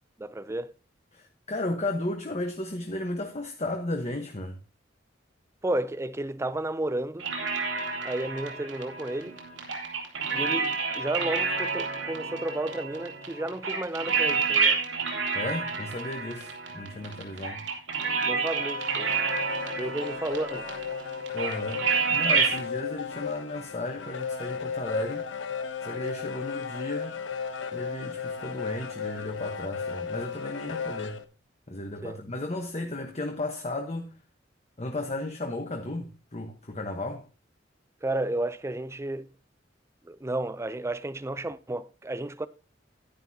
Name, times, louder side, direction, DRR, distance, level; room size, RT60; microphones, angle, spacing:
voice 1, 0.2-0.7 5.6-7.3 8.0-9.4 10.3-14.8 18.3-19.1 19.8-20.7 32.0-32.2 38.0-39.3 40.1-42.5, right 1 dB, 15° right, 0.5 m, -32 dB
voice 2, 1.1-4.6 15.3-17.6 21.3-25.3 25.8-27.1 27.7-31.2 31.7-34.1 34.8-37.2, left 2 dB, 35° left, 1.2 m, -34 dB
sound 1, 7.2-22.6, right 5 dB, 90° right, 2.8 m, -29 dB
sound 2, 18.6-31.2, left 6 dB, 75° left, 0.9 m, -35 dB
11.5 x 10.5 x 2.8 m
head